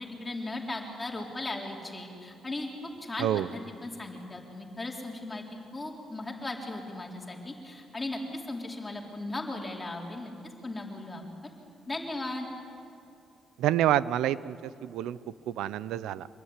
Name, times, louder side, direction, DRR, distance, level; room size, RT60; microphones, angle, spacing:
voice 1, 0.0-2.7 3.0-5.4 5.7-10.3 10.6-11.5 11.9-12.5, left 2 dB, 20° left, 0 dB, 4.2 m, -37 dB
voice 2, 13.6-15.2 15.5-16.3, right 12 dB, 90° right, 17 dB, 0.7 m, -28 dB
26.0 x 21.0 x 9.9 m, 2.6 s
cardioid pair, 90°, 0 cm